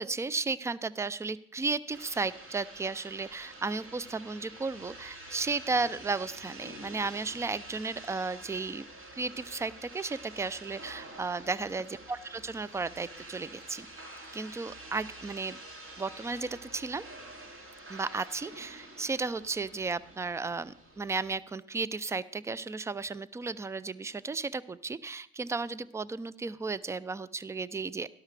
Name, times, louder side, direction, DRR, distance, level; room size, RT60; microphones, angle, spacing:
voice 1, 0.0-8.8 9.2-13.9 14.3-15.6 16.0-17.0 17.9-28.1, right 4 dB, 10° right, 19 dB, 0.3 m, -34 dB
sound 1, 1.9-21.4, right 1 dB, 35° right, 2.7 m, -48 dB
12.5 x 11.5 x 3.3 m, 0.70 s
hypercardioid pair, 70°, 34 cm